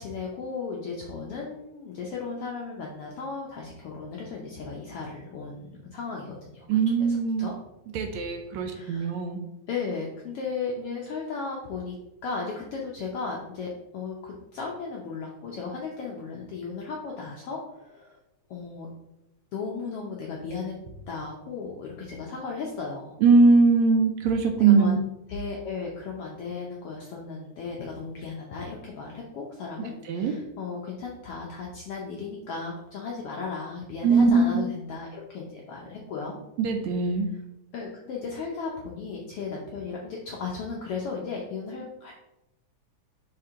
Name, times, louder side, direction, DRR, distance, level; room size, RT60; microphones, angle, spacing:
voice 1, 0.0-6.8 7.4-7.5 8.6-9.1 9.7-11.9 12.2-18.2 18.5-18.9 19.5-20.7 21.1-23.2 24.5-24.9 25.3-36.3 37.7-42.1, left 4 dB, 75° left, -2 dB, 1.3 m, -35 dB
voice 2, 6.7-7.5 7.9-9.4 23.2-25.0 30.1-30.3 34.0-34.7 36.6-37.3, right 4 dB, 75° right, 5 dB, 1.8 m, -21 dB
5.8 x 4.5 x 3.7 m, 0.92 s
omnidirectional pair, 3.4 m